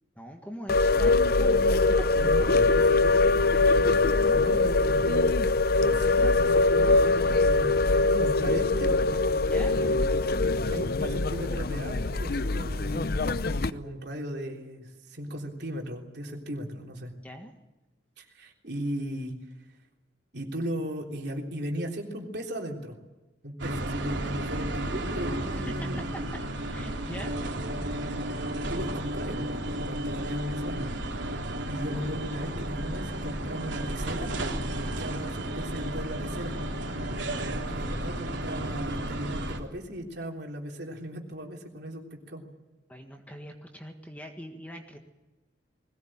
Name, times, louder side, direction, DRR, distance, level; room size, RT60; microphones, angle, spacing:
voice 1, 0.2-2.1 9.5-9.8 17.2-17.5 25.6-26.2 26.6-27.3 42.9-45.0, equal, 10° left, 3 dB, 1.7 m, -42 dB
sound 1, 0.7-13.7, left 3 dB, 50° left, 0.7 m, -23 dB
voice 2, 2.2-5.3 5.7-8.9 9.7-10.0 10.3-10.4 10.7-17.1 18.2-19.3 20.3-23.0 23.4-26.3 28.0-30.9 31.2-34.3 34.7-42.4, equal, 60° right, 1 dB, 3.6 m, -37 dB
sound 2, 23.6-39.6, right 1 dB, 75° right, 3.1 m, -33 dB
21.0 x 19.0 x 8.9 m, 1.1 s
head